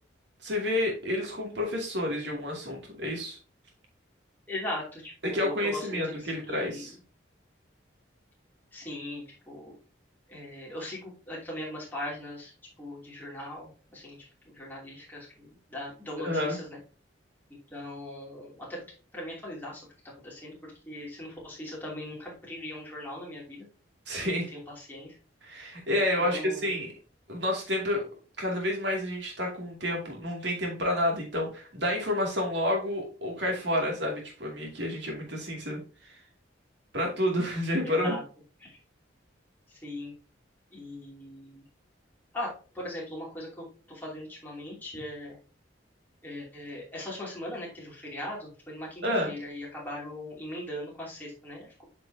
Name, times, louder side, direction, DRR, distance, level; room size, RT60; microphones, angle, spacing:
voice 1, 0.4-3.4 5.2-6.9 16.2-16.6 24.1-24.5 25.4-26.9 27.3-28.0 28.4-36.2 36.9-38.2 49.0-49.3, left 1 dB, 65° right, 0 dB, 2.4 m, -29 dB
voice 2, 4.5-6.9 8.7-9.7 10.3-12.5 12.8-16.8 17.7-18.8 19.1-19.9 20.2-23.7 24.2-25.1 25.9-26.8 37.8-38.2 38.6-38.8 39.7-40.1 40.7-41.6 42.3-42.5 42.7-45.4 46.2-51.8, left 1 dB, 10° left, -5 dB, 2.7 m, -40 dB
8.5 x 5.3 x 2.7 m, 0.36 s
head